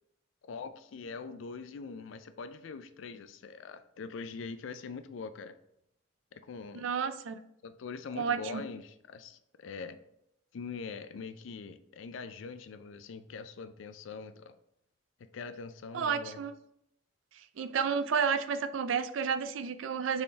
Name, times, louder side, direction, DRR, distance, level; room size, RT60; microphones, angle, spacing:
voice 1, 0.4-5.6 6.3-6.9 7.6-10.0 10.5-14.5 15.3-16.4, left 5 dB, 85° left, 0.4 m, -43 dB
voice 2, 6.7-7.4 8.2-8.6 15.9-16.5 17.6-20.2, right 6 dB, 90° right, 0.4 m, -31 dB
4.2 x 3.5 x 3.3 m
head